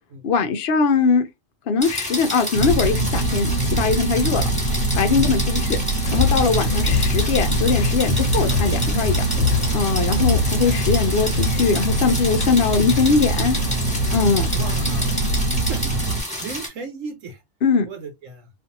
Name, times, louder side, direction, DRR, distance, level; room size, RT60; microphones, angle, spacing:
voice 1, 0.2-1.3 1.7-4.5 5.0-5.8 6.1-9.2 9.7-13.6 14.1-14.5 17.6-17.9, left 5 dB, 60° left, 0.7 m, -21 dB
sound 1, 1.8-16.7, left 1 dB, 5° left, 1.1 m, -30 dB
sound 2, 2.5-16.2, right 2 dB, 90° right, 1.0 m, -23 dB
sound 3, 6.0-15.2, left 4 dB, 80° left, 1.0 m, -27 dB
voice 2, 14.5-15.2 15.6-16.0 16.4-17.4 17.8-18.5, right 4 dB, 70° right, 1.2 m, -35 dB
2.6 x 2.5 x 2.6 m
omnidirectional pair, 1.4 m